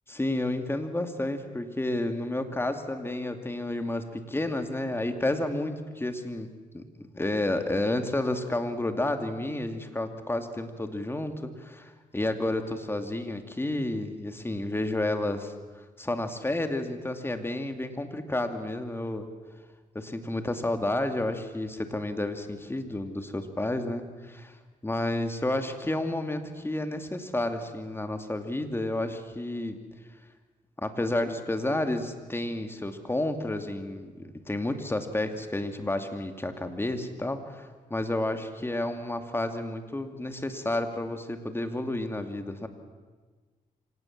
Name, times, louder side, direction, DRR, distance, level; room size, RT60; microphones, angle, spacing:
voice 1, 0.1-6.5 6.7-15.5 16.0-19.3 19.9-24.6 24.8-29.8 30.8-42.7, left 1 dB, 15° left, 7 dB, 2.4 m, -31 dB
26.0 x 17.5 x 7.5 m, 1.4 s
cardioid pair, 75°, 15 cm